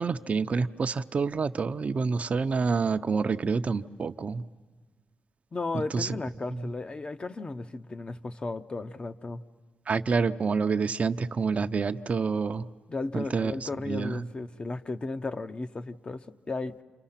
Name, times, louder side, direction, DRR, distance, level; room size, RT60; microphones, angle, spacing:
voice 1, 0.0-4.4 5.9-6.1 9.9-12.7 13.1-13.5 13.9-14.3, right 5 dB, 45° right, 9 dB, 0.7 m, -27 dB
voice 2, 5.5-9.4 12.9-16.8, left 3 dB, 35° left, 9 dB, 0.9 m, -35 dB
29.5 x 27.5 x 5.8 m, 1.4 s
cardioid pair, 75°, 3 cm